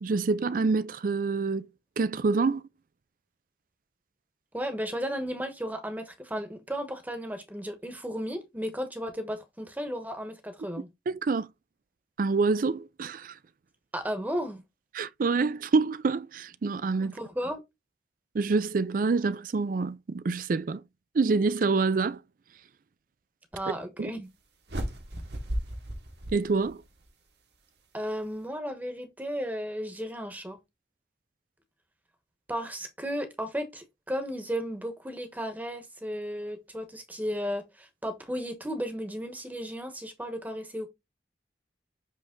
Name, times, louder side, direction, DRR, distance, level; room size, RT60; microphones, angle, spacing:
voice 1, 0.0-1.7 2.0-2.6 11.1-11.5 12.2-13.3 14.9-17.2 18.3-20.8 21.1-22.2 24.0-24.1 26.3-26.8, right 4 dB, 50° right, 0.4 m, -26 dB
voice 2, 4.5-10.9 13.9-14.6 17.0-17.6 23.5-24.3 27.9-30.6 32.5-40.9, equal, 10° right, 1.0 m, -34 dB
sound 1, 24.7-27.1, equal, 65° right, 1.5 m, -35 dB
7.4 x 3.4 x 3.7 m
head